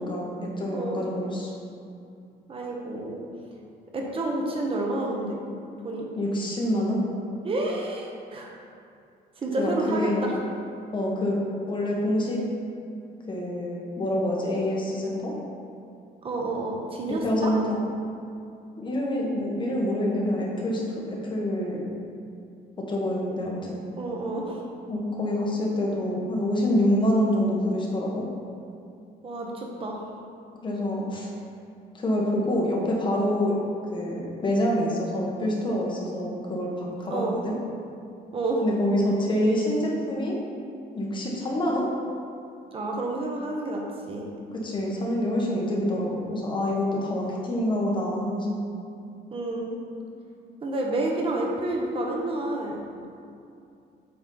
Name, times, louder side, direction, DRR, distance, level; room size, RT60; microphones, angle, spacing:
voice 1, 0.0-1.5 6.2-7.0 9.6-10.3 10.9-11.4 11.7-12.4 13.2-15.3 17.2-17.8 18.8-21.8 22.9-23.8 24.9-28.2 30.6-31.3 31.9-33.5 33.9-37.5 38.6-40.3 40.9-41.8 44.6-48.6, left 1 dB, 30° left, -3 dB, 1.2 m, -26 dB
voice 2, 0.7-1.0 2.5-3.2 3.9-5.4 5.8-6.1 7.4-8.5 9.4-10.3 16.2-17.5 24.0-24.6 29.2-30.0 37.1-37.4 38.3-38.6 42.7-44.3 49.3-49.8 50.6-52.8, right 2 dB, 30° right, -1 dB, 1.0 m, -29 dB
7.9 x 4.1 x 3.9 m, 2.5 s
cardioid pair, 150°, 17 cm